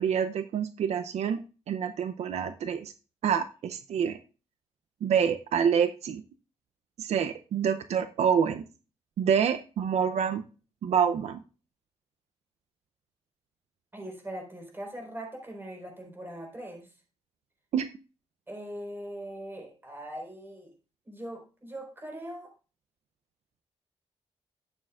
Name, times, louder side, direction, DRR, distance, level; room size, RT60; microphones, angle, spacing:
voice 1, 0.0-2.9 3.2-4.2 5.0-6.2 7.0-8.7 9.2-10.4 10.8-11.4 17.7-17.9, right 7 dB, 80° right, 9 dB, 0.6 m, -27 dB
voice 2, 13.9-16.9 18.5-20.7 21.1-22.5, right 1 dB, 20° right, 1 dB, 4.3 m, -41 dB
11.5 x 8.8 x 2.4 m, 0.33 s
cardioid pair, 95°, 11 cm